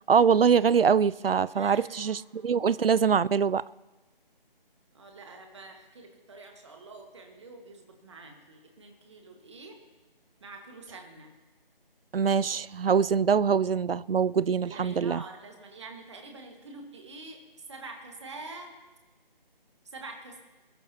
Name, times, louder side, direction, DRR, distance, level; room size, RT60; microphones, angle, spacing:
voice 1, 0.1-3.6 12.1-15.2, right 6 dB, 75° right, 0.5 m, -23 dB
voice 2, 1.5-2.7 4.9-9.8 10.4-11.3 14.4-18.7 19.8-20.4, right 3 dB, 30° right, 1.8 m, -46 dB
21.5 x 13.0 x 2.9 m
figure-of-eight pair, 155°, 29 cm